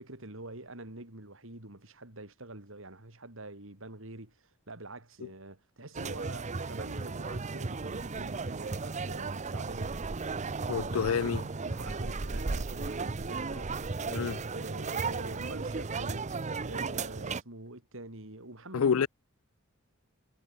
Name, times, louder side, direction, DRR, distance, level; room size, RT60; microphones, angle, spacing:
voice 1, 0.0-4.3 4.7-9.9 10.9-11.1 11.6-13.9 14.3-16.3 16.6-19.1, right 2 dB, 70° right, 4.3 m, -45 dB
sound 1, 5.9-17.4, right 4 dB, 35° right, 0.7 m, -35 dB
voice 2, 10.7-11.5 14.1-14.4 18.7-19.1, left 6 dB, 85° left, 0.4 m, -28 dB
head